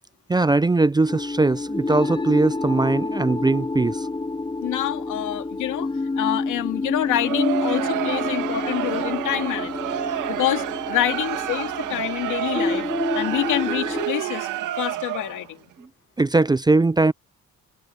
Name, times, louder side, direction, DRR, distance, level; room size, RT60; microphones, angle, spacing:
voice 1, 0.3-4.1 16.2-17.1, right 3 dB, 15° right, 0.5 m, -20 dB
sound 1, 1.1-14.0, left 3 dB, 15° left, 3.7 m, -29 dB
voice 2, 4.6-5.9 6.2-10.0 10.3-14.5 14.8-15.6, left 14 dB, 85° left, 2.4 m, -27 dB
Crowd, 7.0-15.5, right 13 dB, 85° right, 2.2 m, -29 dB
cardioid pair, 90°, 30 cm